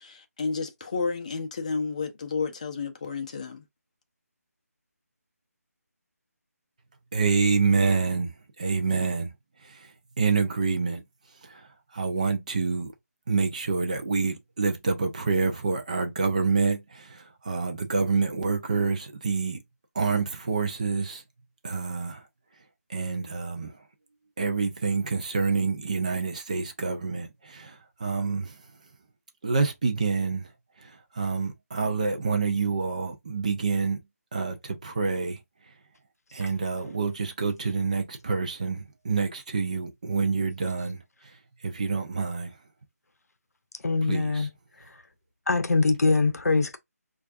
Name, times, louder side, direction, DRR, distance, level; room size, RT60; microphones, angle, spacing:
voice 1, 0.0-3.6, left 4 dB, 25° left, 0.5 m, -31 dB
voice 2, 7.1-9.3 9.6-9.9 10.2-11.0 11.4-12.9 13.3-19.6 20.0-21.2 21.6-22.2 22.9-23.8 24.4-28.6 29.4-30.5 30.8-34.0 34.3-35.4 36.3-41.0 41.6-42.5 44.0-44.5, right 4 dB, 25° right, 0.4 m, -27 dB
voice 3, 43.8-44.5 45.5-46.8, left 3 dB, 70° left, 0.6 m, -23 dB
4.4 x 2.3 x 2.5 m
figure-of-eight pair, 170°, 9 cm